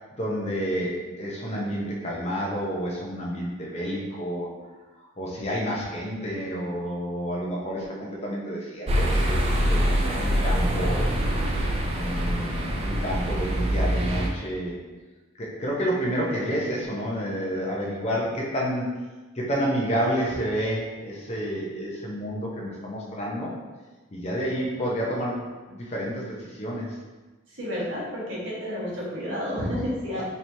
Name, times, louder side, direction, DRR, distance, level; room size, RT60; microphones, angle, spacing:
voice 1, 0.1-4.5 5.2-11.1 11.9-14.8 15.4-18.8 19.4-23.5 24.1-26.9, equal, 30° left, -4 dB, 0.6 m, -29 dB
sound 1, 8.9-14.3, equal, 30° right, 0.4 m, -24 dB
voice 2, 27.5-30.2, equal, 65° right, -7 dB, 1.3 m, -30 dB
4.5 x 2.9 x 2.7 m, 1.2 s
head